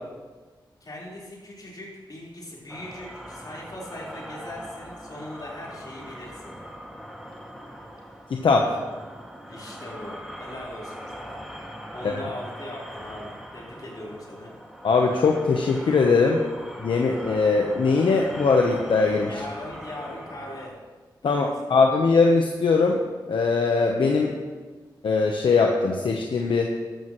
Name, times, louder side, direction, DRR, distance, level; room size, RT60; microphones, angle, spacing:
voice 1, 0.8-6.5 9.5-11.4 11.9-14.5 19.2-20.8 21.3-21.7, left 1 dB, 50° left, -4 dB, 4.4 m, -40 dB
sound 1, 2.7-20.7, equal, ahead, 2.1 m, -41 dB
voice 2, 8.3-8.7 12.0-12.2 14.8-16.4 16.8-19.3 21.2-23.0 23.3-24.3 25.0-26.7, left 4 dB, 80° left, 1 dB, 1.0 m, -21 dB
13.5 x 12.5 x 3.2 m, 1.3 s
cardioid pair, 50°, 9 cm